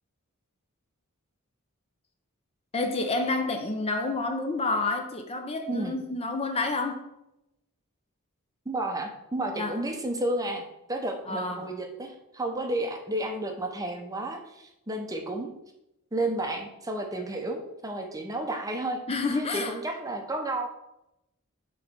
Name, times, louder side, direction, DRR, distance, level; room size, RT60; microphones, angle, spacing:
voice 1, 2.7-7.1 9.5-9.8 11.3-11.7 19.1-19.7, left 3 dB, 25° left, 0.6 m, -29 dB
voice 2, 5.7-6.0 8.7-15.5 16.1-19.0 19.3-20.7, right 1 dB, 15° right, 0.7 m, -32 dB
7.5 x 3.1 x 5.2 m
head